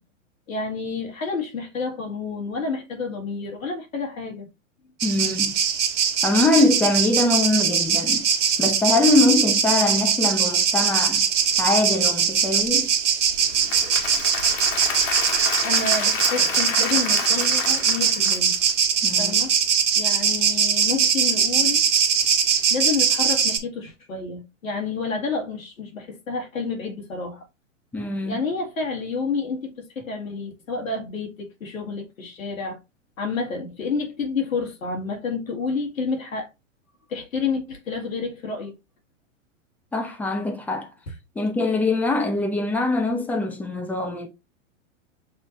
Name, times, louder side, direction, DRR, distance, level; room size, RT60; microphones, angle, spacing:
voice 1, 0.5-4.5 15.6-18.6 19.2-19.5 20.0-21.8 22.7-27.4 28.3-32.8 33.2-36.5 37.1-38.7, left 4 dB, 90° left, 1.7 m, -29 dB
voice 2, 5.0-5.5 6.2-8.3 8.6-11.3 11.6-12.9 19.0-19.4 27.9-28.4 39.9-40.9 41.4-44.3, left 2 dB, 5° left, 0.3 m, -23 dB
sound 1, 5.0-23.6, right 7 dB, 65° right, 1.2 m, -21 dB
Applause / Crowd, 13.4-18.7, left 5 dB, 70° left, 1.6 m, -30 dB
6.5 x 2.6 x 2.9 m
hypercardioid pair, 115°, 40 cm